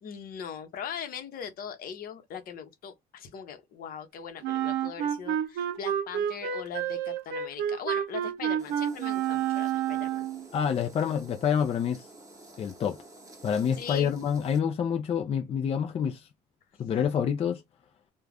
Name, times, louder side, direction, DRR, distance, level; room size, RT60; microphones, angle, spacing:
voice 1, 0.0-10.3 13.8-14.1, left 8 dB, 60° left, 0.8 m, -40 dB
Wind instrument woodwind instrument, 4.4-10.5, right 10 dB, 85° right, 0.5 m, -29 dB
sound 1, 8.6-14.6, right 2 dB, 20° right, 0.9 m, -51 dB
voice 2, 10.5-12.1 12.6-13.0 13.4-16.3 16.8-17.6, left 8 dB, 35° left, 0.4 m, -27 dB
2.4 x 2.2 x 3.3 m
cardioid pair, 110°, 17 cm